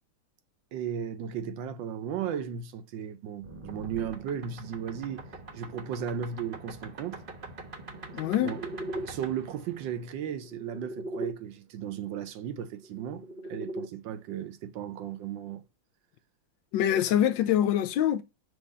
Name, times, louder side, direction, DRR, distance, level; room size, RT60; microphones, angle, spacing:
voice 1, 0.7-5.3 5.5-7.2 8.4-8.6 9.0-13.2 13.5-15.6, right 8 dB, 75° right, 1.4 m, -35 dB
sound 1, 3.4-11.3 12.6-13.9, right 1 dB, 35° right, 1.0 m, -41 dB
voice 2, 8.1-8.6 16.7-18.2, left 11 dB, 75° left, 1.2 m, -24 dB
6.3 x 2.9 x 5.4 m
omnidirectional pair, 2.2 m